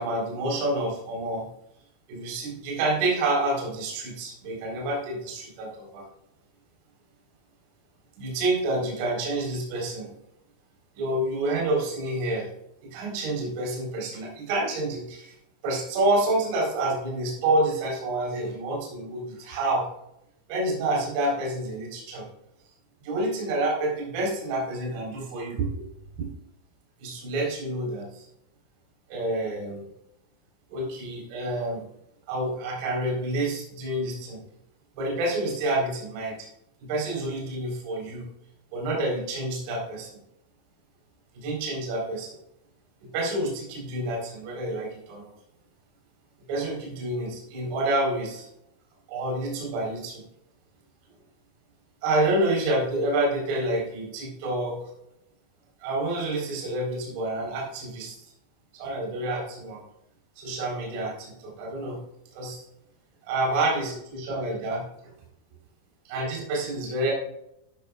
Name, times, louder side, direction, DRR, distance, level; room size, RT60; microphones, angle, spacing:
voice 1, 0.0-1.5 2.1-6.0 8.2-10.1 10.9-12.5 12.8-15.3 15.6-19.9 20.5-22.3 23.0-25.7 26.2-26.3 27.0-28.3 29.1-29.9 30.7-31.9 32.3-34.4 35.0-36.5 36.8-38.3 38.7-40.1 41.3-42.4 43.0-45.3 46.5-48.5 49.1-50.2 52.0-54.8 55.8-58.2 58.7-59.8 60.4-62.0 62.3-62.6 63.2-64.8 66.1-67.1, right 2 dB, 45° right, -2 dB, 4.3 m, -28 dB
11.5 x 10.5 x 2.5 m, 0.80 s
figure-of-eight pair, 90°, 0 cm